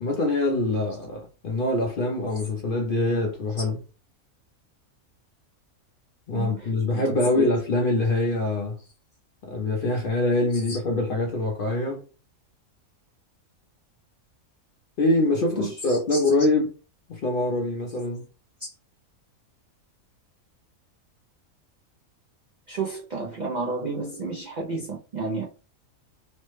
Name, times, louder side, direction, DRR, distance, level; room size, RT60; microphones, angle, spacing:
voice 1, 0.0-3.8 6.3-8.8 9.4-12.0 15.0-16.7 17.1-18.2, left 2 dB, 65° left, 0.5 m, -24 dB
voice 2, 6.3-7.5 10.5-10.8 15.5-16.5 18.6-18.7 22.7-25.4, right 3 dB, 85° right, 0.4 m, -32 dB
3.1 x 2.1 x 3.0 m
omnidirectional pair, 1.5 m